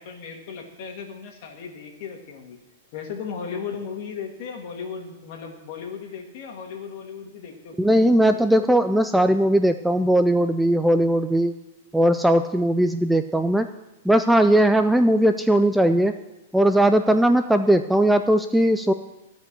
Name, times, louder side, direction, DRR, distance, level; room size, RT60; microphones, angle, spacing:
voice 1, 0.0-2.6 2.9-8.1, left 6 dB, 50° left, 2 dB, 2.3 m, -36 dB
voice 2, 7.8-11.5 11.9-13.7 14.1-16.1 16.5-18.9, right 1 dB, ahead, 8 dB, 0.3 m, -19 dB
15.0 x 5.2 x 7.7 m, 1.0 s
hypercardioid pair, 150°, 0 cm